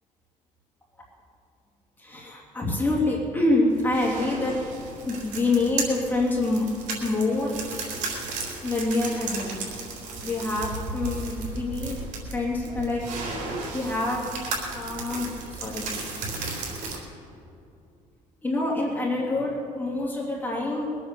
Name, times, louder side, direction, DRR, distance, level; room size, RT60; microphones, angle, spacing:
voice 1, 2.0-4.6 5.1-6.7 7.0-7.5 8.6-9.6 10.2-12.0 12.3-13.0 13.3-13.4 13.7-14.3 14.7-15.3 15.6-16.2 16.8-16.9 18.4-20.9, left 2 dB, 15° left, -4 dB, 3.0 m, -26 dB
sound 1, 3.7-17.0, right 3 dB, 80° right, 4.0 m, -34 dB
22.5 x 8.6 x 7.1 m, 2.6 s
cardioid pair, 130°, 14 cm